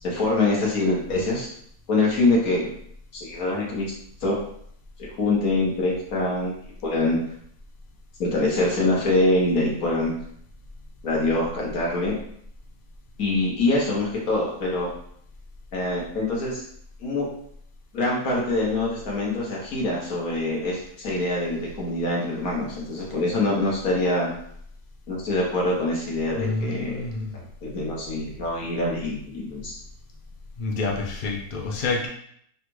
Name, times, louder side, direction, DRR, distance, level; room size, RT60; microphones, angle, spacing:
voice 1, 0.0-1.5 1.9-2.7 3.1-3.9 4.2-4.4 5.2-6.5 6.8-7.2 8.2-10.1 11.0-12.1 13.2-14.9 15.7-16.6 17.0-17.3 17.9-24.3 25.1-26.9 27.6-29.7, left 2 dB, 70° left, -3 dB, 1.7 m, -24 dB
voice 2, 26.3-27.4 30.6-32.1, left 3 dB, 45° left, -1 dB, 0.7 m, -28 dB
4.1 x 2.4 x 4.6 m, 0.66 s
omnidirectional pair, 1.6 m